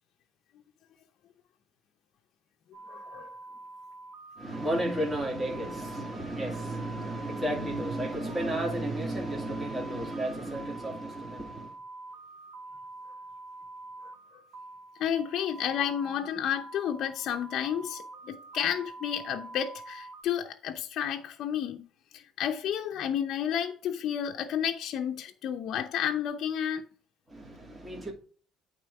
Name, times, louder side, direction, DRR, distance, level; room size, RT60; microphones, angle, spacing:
sound 1, 2.7-20.2, right 2 dB, 65° right, 1.9 m, -46 dB
voice 1, 2.9-3.4 14.0-14.4 15.0-21.9 22.1-26.8, left 9 dB, 60° left, 0.6 m, -31 dB
voice 2, 4.4-11.7 27.3-28.1, right 1 dB, 20° right, 2.5 m, -33 dB
8.9 x 3.6 x 4.7 m
cardioid pair, 95°, 0 cm